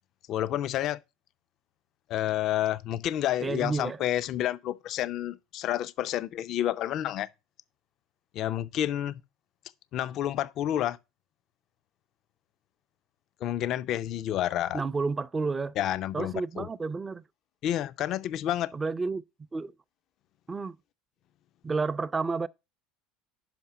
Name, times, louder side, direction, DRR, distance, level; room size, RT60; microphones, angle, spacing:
voice 1, 0.3-1.0 2.1-7.3 8.3-9.1 9.9-11.0 13.4-14.8 15.8-16.7 17.6-18.7, left 12 dB, 50° left, 0.5 m, -29 dB
voice 2, 3.4-4.0 14.7-15.8 16.1-17.2 18.7-19.2 19.5-19.7 20.5-20.8 21.6-22.5, right 4 dB, 20° right, 0.5 m, -30 dB
5.9 x 5.5 x 6.7 m
supercardioid pair, 105°, 0 cm